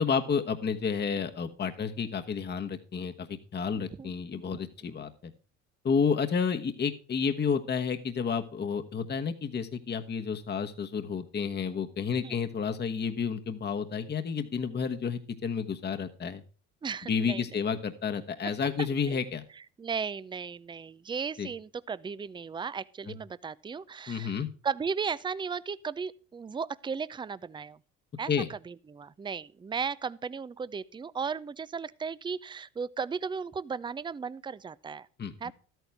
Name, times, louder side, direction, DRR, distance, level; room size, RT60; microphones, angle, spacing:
voice 1, 0.0-5.3 5.8-16.4 17.1-19.4 21.4-21.5 23.1-23.2 24.1-24.5 28.3-28.5 35.2-35.5, left 6 dB, 30° left, 1.2 m, -30 dB
voice 2, 16.8-17.4 19.1-19.2 19.8-27.8 28.2-35.1 35.4-35.5, right 6 dB, 15° right, 0.5 m, -35 dB
13.0 x 9.2 x 3.4 m
hypercardioid pair, 65°, 35 cm